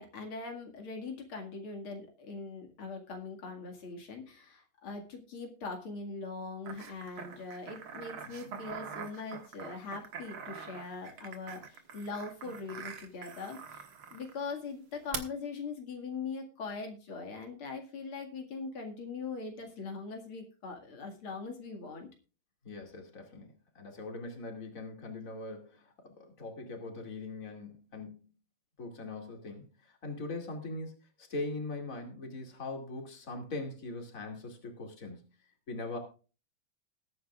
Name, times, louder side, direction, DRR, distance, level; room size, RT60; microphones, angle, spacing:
voice 1, 0.0-22.1, left 4 dB, 85° left, 3 dB, 3.0 m, -41 dB
sound 1, 6.7-14.3 15.1-15.2, right 7 dB, 85° right, 2.2 m, -44 dB
voice 2, 22.6-28.2 28.8-35.2 35.7-36.0, left 2 dB, 40° left, 2 dB, 2.9 m, -41 dB
20.0 x 9.4 x 2.4 m, 0.35 s
omnidirectional pair, 2.3 m